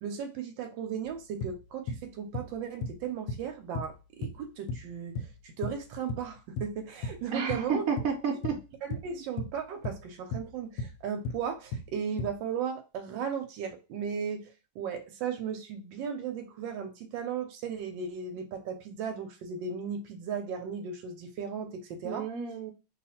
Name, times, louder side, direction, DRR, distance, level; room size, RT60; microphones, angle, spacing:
voice 1, 0.0-7.9 8.8-22.3, right 7 dB, 85° right, 5 dB, 1.3 m, -36 dB
sound 1, 1.1-1.2 1.4-2.1 2.3-3.0 3.3-3.5 3.7-3.9 4.2-4.9 5.1-6.3 6.6-7.2 7.5-8.1 8.4-8.6 8.9-9.6 9.8-10.5 10.8-11.0 11.2-11.4 11.7-12.3, left 2 dB, 70° left, 1.1 m, -36 dB
voice 2, 7.3-8.5 22.0-22.7, right 6 dB, 65° right, 1 dB, 1.0 m, -31 dB
2.8 x 2.4 x 4.2 m, 0.30 s
omnidirectional pair, 2.0 m